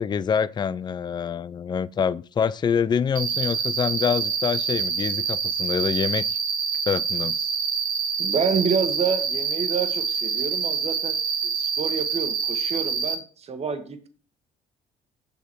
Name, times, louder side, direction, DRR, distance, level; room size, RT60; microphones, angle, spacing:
voice 1, 0.0-6.4 6.9-7.5, left 7 dB, 25° left, 0.4 m, -26 dB
Cricket, 3.1-13.1, right 6 dB, 55° right, 1.8 m, -26 dB
voice 2, 8.2-11.2 11.4-14.1, right 6 dB, 40° right, 1.5 m, -28 dB
7.0 x 7.0 x 4.5 m
cardioid pair, 110°, 17 cm